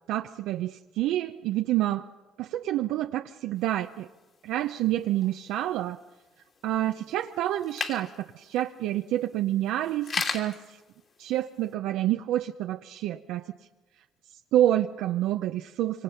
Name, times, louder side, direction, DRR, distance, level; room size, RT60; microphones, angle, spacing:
voice 1, 0.1-2.1 2.4-4.1 4.4-6.0 6.6-10.8 11.2-13.5 14.5-16.0, right 13 dB, 80° right, 6 dB, 0.6 m, -28 dB
sound 1, 3.6-11.7, left 5 dB, 45° left, 3.1 m, -40 dB
25.5 x 25.0 x 5.8 m, 1.2 s
cardioid pair, 105°, 0 cm